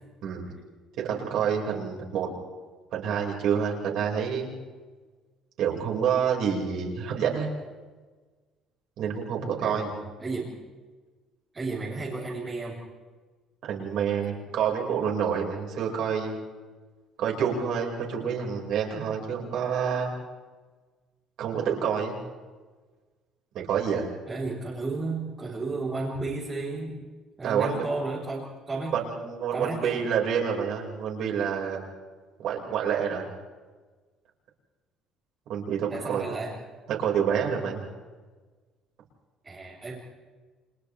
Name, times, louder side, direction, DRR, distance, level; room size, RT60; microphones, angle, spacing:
voice 1, 1.0-2.3 2.9-4.5 5.6-7.5 9.0-9.9 13.6-16.4 17.2-20.1 21.4-22.2 23.5-24.1 27.4-27.8 28.9-31.8 32.4-33.3 35.5-36.2 36.9-37.9, right 7 dB, 50° right, -1 dB, 5.4 m, -28 dB
voice 2, 9.6-10.6 11.5-12.8 24.3-27.0 27.4-29.0 29.5-30.0 35.9-36.6 39.4-40.0, right 3 dB, 15° right, -7 dB, 3.9 m, -33 dB
30.0 x 26.5 x 3.4 m, 1.4 s
cardioid pair, 175°, 0 cm